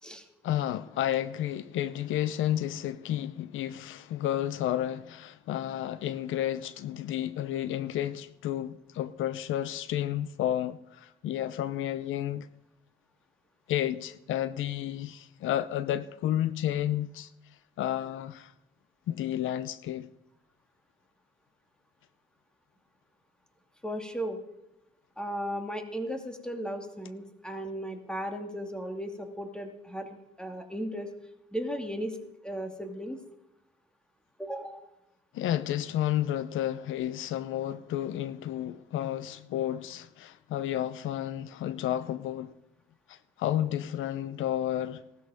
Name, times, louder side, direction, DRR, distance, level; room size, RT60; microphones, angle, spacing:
voice 1, 0.4-12.5 13.7-17.3 17.8-18.5 19.1-20.1 35.3-42.5 43.1-45.0, left 12 dB, 80° left, 0.7 m, -31 dB
voice 2, 23.8-24.4 25.2-31.1 31.5-32.2 32.4-33.2 34.4-34.8, equal, 5° left, 2.6 m, -36 dB
18.5 x 13.0 x 5.2 m
cardioid pair, 90°, 20 cm